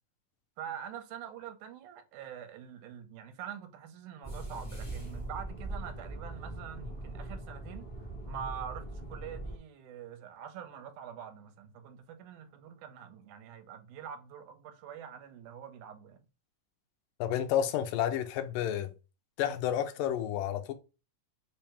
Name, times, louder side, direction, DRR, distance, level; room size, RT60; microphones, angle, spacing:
voice 1, 0.6-16.2, right 8 dB, 75° right, 2.1 m, -45 dB
sound 1, 4.2-9.6, right 1 dB, 15° left, 1.2 m, -41 dB
voice 2, 17.2-18.9 19.4-20.7, left 10 dB, 90° left, 2.3 m, -30 dB
5.7 x 2.8 x 3.3 m
omnidirectional pair, 3.8 m